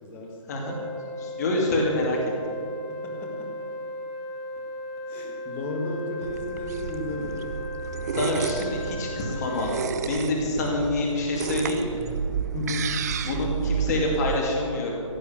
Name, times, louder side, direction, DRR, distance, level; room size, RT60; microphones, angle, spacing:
voice 1, 0.0-0.6 2.9-3.5 5.1-7.5 12.5-13.0, left 2 dB, 15° left, 1 dB, 1.7 m, -34 dB
Wind instrument woodwind instrument, 0.6-9.8, left 1 dB, 10° right, 3.4 m, -36 dB
voice 2, 1.2-2.2 8.1-12.0 13.2-15.0, left 2 dB, 30° left, -1 dB, 2.4 m, -26 dB
sound 1, 6.2-14.4, right 6 dB, 30° right, 0.6 m, -31 dB
16.5 x 8.0 x 7.4 m, 2.4 s
hypercardioid pair, 165°, 18 cm